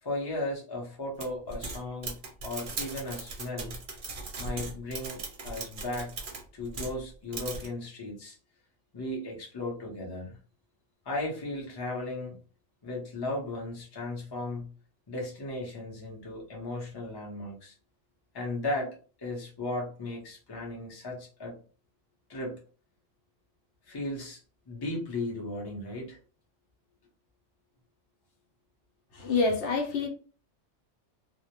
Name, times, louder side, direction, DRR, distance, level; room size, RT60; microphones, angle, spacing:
voice 1, 0.0-2.2 2.4-3.8 4.4-6.1 6.5-8.4 8.9-10.4 11.0-12.3 12.8-14.7 15.1-17.7 18.3-21.6 22.3-22.6 23.8-24.4 24.7-26.2, left 2 dB, 25° left, 0.6 m, -36 dB
sound 1, 1.2-7.0 7.3-7.7, right 3 dB, 55° right, 0.7 m, -38 dB
voice 2, 29.1-30.1, left 4 dB, 75° left, 0.8 m, -27 dB
2.1 x 2.0 x 2.8 m
omnidirectional pair, 1.2 m